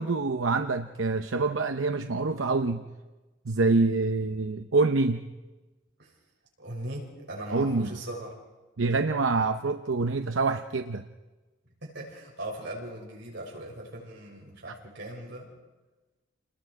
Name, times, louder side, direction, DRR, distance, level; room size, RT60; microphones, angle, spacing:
voice 1, 0.0-2.8 3.5-5.3 7.5-7.9 8.8-11.0, right 3 dB, 90° right, 7 dB, 0.8 m, -26 dB
voice 2, 6.6-8.3 11.8-15.5, right 1 dB, 65° right, -2 dB, 6.5 m, -39 dB
29.0 x 20.5 x 4.8 m, 1.2 s
head